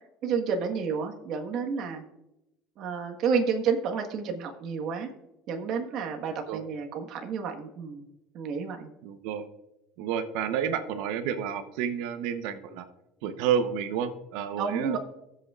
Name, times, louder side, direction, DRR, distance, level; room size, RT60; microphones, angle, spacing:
voice 1, 0.2-2.0 2.8-5.1 5.5-8.0 8.3-8.9 14.6-15.0, right 6 dB, 50° right, 3 dB, 1.4 m, -30 dB
voice 2, 9.0-9.5 10.0-12.8 13.2-15.0, right 8 dB, 70° right, 10 dB, 0.9 m, -30 dB
18.0 x 8.0 x 2.5 m, 0.91 s
cardioid pair, 145°, 0 cm